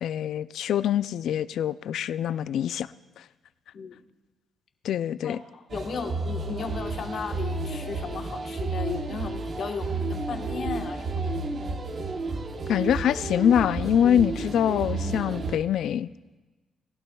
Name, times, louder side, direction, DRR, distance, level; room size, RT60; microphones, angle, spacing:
voice 1, 0.0-2.9 4.8-5.4 12.7-16.1, left 9 dB, 75° left, 16 dB, 0.3 m, -24 dB
voice 2, 5.2-11.0, left 6 dB, 60° left, 4 dB, 1.2 m, -35 dB
sound 1, 5.7-15.6, right 3 dB, 45° right, 1.0 m, -31 dB
19.5 x 12.0 x 2.3 m, 1.2 s
cardioid pair, 90°, 0 cm